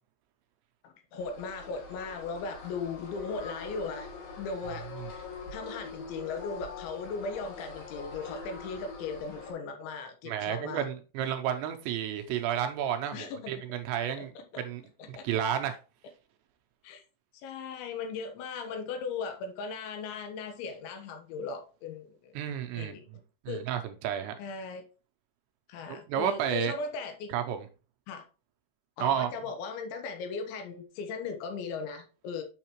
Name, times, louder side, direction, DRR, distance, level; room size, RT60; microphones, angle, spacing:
voice 1, 0.8-4.1 4.4-4.9 5.5-10.9 13.1-13.5 15.0-15.2 16.8-17.0 17.4-22.3 22.7-23.1 23.5-23.6 24.4-24.9 25.7-27.3 28.1-28.2 29.0-32.4, left 4 dB, 75° left, 3.4 m, -37 dB
sound 1, 1.2-9.5, left 4 dB, 50° left, 3.9 m, -43 dB
voice 2, 10.3-14.3 14.6-14.8 15.1-15.8 22.3-23.0 23.5-24.3 26.1-26.7 27.3-27.6 29.0-29.3, right 9 dB, 80° right, 2.8 m, -31 dB
7.8 x 6.5 x 3.0 m
omnidirectional pair, 5.5 m